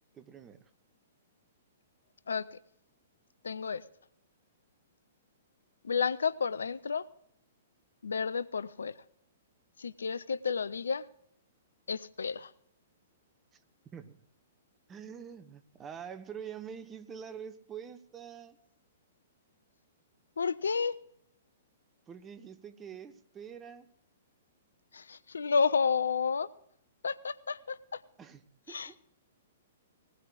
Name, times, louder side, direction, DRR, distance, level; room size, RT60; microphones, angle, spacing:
voice 1, 0.1-0.6 13.9-14.2 14.9-18.6 22.1-23.9 28.2-28.4 28.7-29.0, right 7 dB, 20° right, 9 dB, 1.0 m, -45 dB
voice 2, 2.3-2.6 3.4-3.8 5.8-7.1 8.0-9.0 9.8-11.1 11.9-12.5 20.4-20.9 24.9-26.5 27.0-28.0 28.7-29.0, left 5 dB, 70° left, 18 dB, 0.5 m, -31 dB
19.5 x 19.0 x 2.4 m, 0.72 s
figure-of-eight pair, 110°, 0 cm